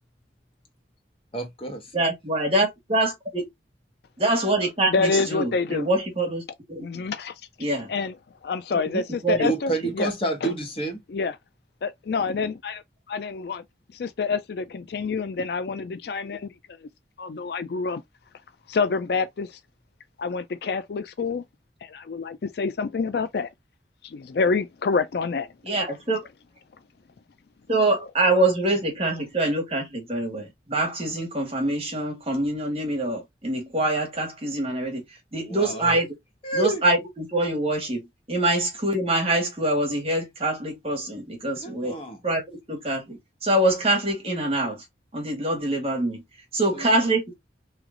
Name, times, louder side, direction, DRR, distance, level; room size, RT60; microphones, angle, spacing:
voice 1, 1.3-1.9 9.4-11.0 35.4-36.0 36.4-36.8 38.4-38.5 41.6-42.2 46.7-47.0, right 2 dB, 30° left, 1.3 m, -29 dB
voice 2, 1.9-3.5 4.2-6.8 7.6-7.9 9.2-9.5 25.7-26.2 27.7-35.0 35.3-36.1 36.5-42.0 42.2-42.4 42.7-44.8 45.1-46.2 46.5-47.2, right 2 dB, 35° right, 1.7 m, -25 dB
voice 3, 4.9-5.9 6.8-7.4 7.9-8.2 8.4-10.1 10.4-10.5 11.1-11.4 11.8-13.6 13.9-16.9 17.2-18.0 18.7-19.6 20.2-21.4 21.8-23.5 24.0-25.5, left 4 dB, 60° left, 0.4 m, -27 dB
3.2 x 3.0 x 3.6 m
head